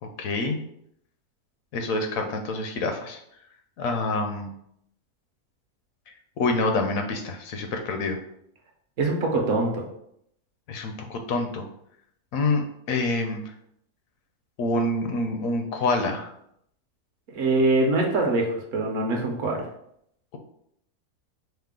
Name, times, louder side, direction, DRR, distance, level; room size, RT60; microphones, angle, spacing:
voice 1, 0.2-0.6 1.7-3.2 3.8-4.5 6.4-8.2 10.7-11.6 12.3-13.4 14.6-16.3, left 2 dB, 70° left, 5 dB, 0.9 m, -26 dB
voice 2, 9.0-9.9 17.3-19.7, right 2 dB, 65° right, 1 dB, 1.0 m, -23 dB
5.5 x 2.0 x 3.6 m, 0.73 s
omnidirectional pair, 1.6 m